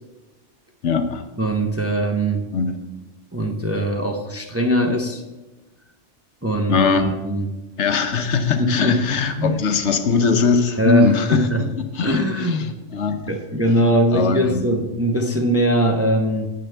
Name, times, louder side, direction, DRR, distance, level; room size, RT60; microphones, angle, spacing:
voice 1, 0.8-1.2 2.5-2.8 6.7-7.1 7.8-11.7 11.9-13.2 14.1-14.7, left 5 dB, 70° left, 8 dB, 1.1 m, -20 dB
voice 2, 1.4-2.5 3.3-5.2 6.4-7.5 8.6-9.0 9.4-9.6 10.8-11.6 12.0-12.7 13.3-16.5, right 1 dB, 15° right, 3 dB, 0.7 m, -21 dB
12.0 x 8.7 x 3.4 m, 1.1 s
omnidirectional pair, 1.3 m